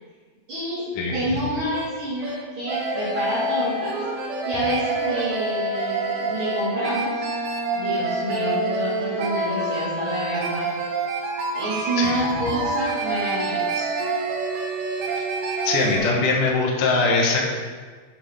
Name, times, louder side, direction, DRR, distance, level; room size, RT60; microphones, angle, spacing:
voice 1, 0.5-0.8 1.1-4.0 4.2-7.2 7.7-10.7 11.5-13.9, equal, 55° right, -11 dB, 1.4 m, -28 dB
sound 1, 1.4-1.5 1.7-1.9 2.2-2.4 2.7-16.0, right 2 dB, 80° right, 2.2 m, -27 dB
voice 2, 15.6-17.5, left 3 dB, 80° left, -2 dB, 1.9 m, -21 dB
7.8 x 7.4 x 3.4 m, 1.5 s
omnidirectional pair, 5.4 m